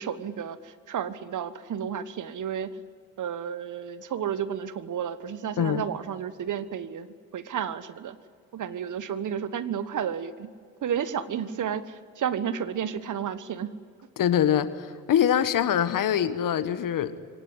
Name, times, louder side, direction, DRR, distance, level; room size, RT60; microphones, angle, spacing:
voice 1, 0.0-2.7 3.2-7.1 7.3-8.2 8.5-10.5 10.8-13.7, right 8 dB, 45° right, 14 dB, 1.4 m, -32 dB
voice 2, 14.2-17.1, left 9 dB, 50° left, 13 dB, 1.5 m, -24 dB
24.5 x 18.5 x 9.8 m, 2.1 s
hypercardioid pair, 50°, 41 cm